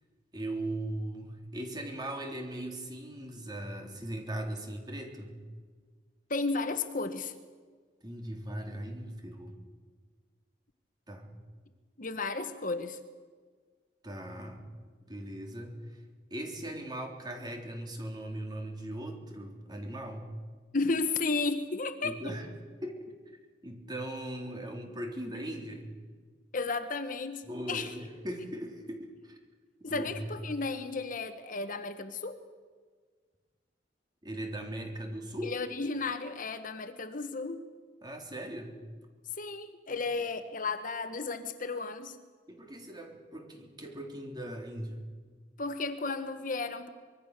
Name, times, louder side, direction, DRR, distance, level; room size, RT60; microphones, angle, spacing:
voice 1, 0.3-5.4 8.0-9.6 11.1-11.3 14.0-14.6 15.0-16.0 16.3-20.3 22.0-22.5 22.8-23.1 23.6-25.9 27.5-29.4 29.8-30.1 34.2-35.6 38.0-38.8 39.9-40.0 42.5-45.0, right 1 dB, 25° right, 2 dB, 3.7 m, -39 dB
voice 2, 6.3-7.3 12.0-13.0 20.7-22.2 26.5-27.9 29.8-32.4 35.4-37.6 38.3-38.4 39.4-42.2 45.6-46.9, left 3 dB, 50° left, 9 dB, 1.3 m, -33 dB
25.0 x 22.0 x 6.8 m, 1.5 s
head